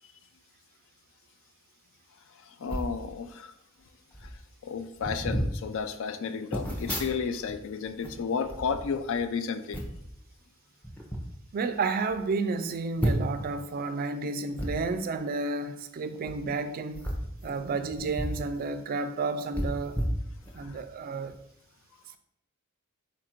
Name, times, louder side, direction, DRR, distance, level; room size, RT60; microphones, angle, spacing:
voice 1, 2.4-3.5 4.2-4.3 4.6-9.8 20.6-20.7, left 6 dB, 65° left, 0.4 m, -32 dB
sound 1, 2.7-3.0 3.8-3.9 4.1-4.4 5.0-5.5 6.5-7.5 7.8-9.2 9.7-10.1 10.8-11.2 11.8-11.9 12.1-12.2 13.0-13.5 14.5-14.7 16.1-16.3 16.9-18.4 18.7-18.8 19.5-20.7 21.2-21.4, equal, 5° left, 0.6 m, -32 dB
voice 2, 11.5-17.1 17.4-20.0 20.5-21.3, right 3 dB, 45° right, 0.3 m, -31 dB
4.5 x 2.5 x 4.3 m
head